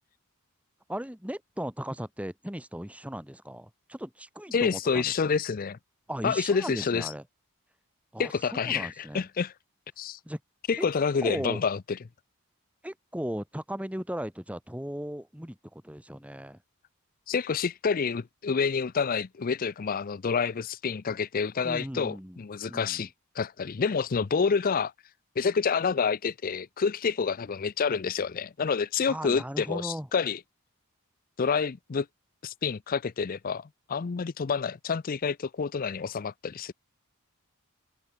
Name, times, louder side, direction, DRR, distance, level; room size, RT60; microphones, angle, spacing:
voice 1, 0.9-5.1 6.1-7.2 8.1-9.2 10.2-10.4 10.8-10.9 11.2-11.6 12.8-16.6 21.6-22.4 22.7-23.1 29.1-30.1, equal, 5° right, 2.8 m, -37 dB
voice 2, 4.5-5.8 6.2-7.1 8.2-9.5 10.0-10.2 10.7-12.0 17.3-23.1 23.4-24.9 25.4-30.4 31.4-32.1 32.4-36.7, left 5 dB, 40° left, 0.4 m, -28 dB
head